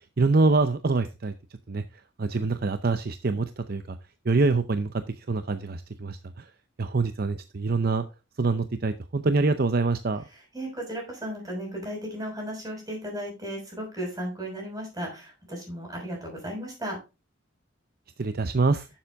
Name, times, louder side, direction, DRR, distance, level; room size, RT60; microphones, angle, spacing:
voice 1, 0.2-1.3 1.7-1.8 2.2-4.0 4.3-5.0 5.3-6.4 6.8-8.0 8.4-10.2 18.2-18.9, right 3 dB, 50° right, 10 dB, 0.6 m, -25 dB
voice 2, 10.3-17.0, equal, 20° right, 0 dB, 6.3 m, -35 dB
11.5 x 7.3 x 3.5 m, 0.28 s
head